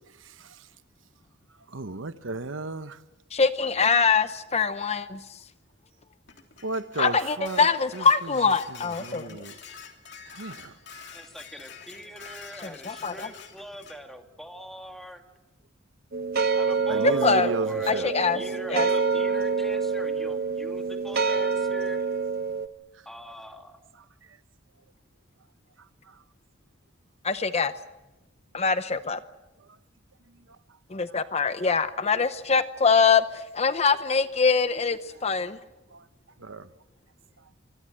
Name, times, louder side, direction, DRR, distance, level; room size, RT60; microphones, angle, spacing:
voice 1, 1.7-3.0 6.6-7.7 7.9-8.0 9.0-9.5 10.3-10.7 16.9-18.1 35.9-36.0 36.4-36.7, right 2 dB, 75° right, 1.0 m, -33 dB
voice 2, 3.3-5.2 7.0-9.4 12.6-13.3 17.0-17.5 17.9-18.4 18.7-18.9 27.2-27.7 28.5-29.2 30.9-35.6, left 5 dB, 35° left, 0.8 m, -23 dB
Dishes pots and pans, 6.3-14.0, left 6 dB, 60° left, 3.2 m, -46 dB
voice 3, 11.1-15.2 16.5-22.0 23.1-23.8, equal, ahead, 2.4 m, -42 dB
sound 1, 16.1-22.7, right 5 dB, 50° right, 1.1 m, -26 dB
24.5 x 24.5 x 7.7 m
head